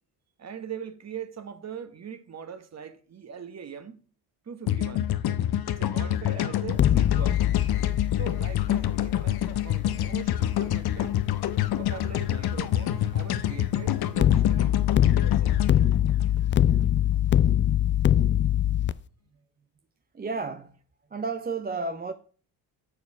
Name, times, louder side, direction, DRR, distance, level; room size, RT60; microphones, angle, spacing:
voice 1, 0.4-4.0 4.4-5.1 5.7-7.4 8.1-11.2 11.8-14.8 15.2-15.5, right 7 dB, 35° right, 1.3 m, -41 dB
sound 1, 4.7-16.9, left 12 dB, 60° left, 1.0 m, -27 dB
sound 2, 6.7-11.8 14.2-18.9, left 11 dB, 30° left, 0.4 m, -24 dB
voice 2, 20.1-20.8 21.1-22.1, right 4 dB, 20° right, 0.7 m, -32 dB
7.1 x 6.9 x 4.7 m
supercardioid pair, 65°, 43 cm